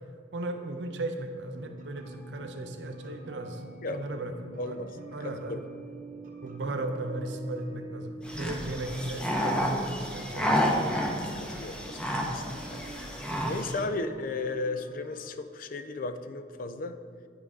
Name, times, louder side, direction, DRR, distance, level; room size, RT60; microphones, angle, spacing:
voice 1, 0.3-3.6 3.9-4.8 5.1-5.6 6.4-11.0, right 2 dB, 80° right, 6 dB, 0.7 m, -36 dB
sound 1, 1.5-15.3, right 2 dB, 50° right, 0.9 m, -46 dB
voice 2, 3.8-4.2 4.6-4.9 5.5-5.6 10.9-11.0 11.3-12.0 12.3-12.8 13.5-17.0, left 3 dB, 50° left, 10 dB, 0.4 m, -35 dB
sound 2, 8.2-13.8, equal, 5° left, 0.7 m, -30 dB
10.5 x 4.6 x 3.7 m, 2.2 s
head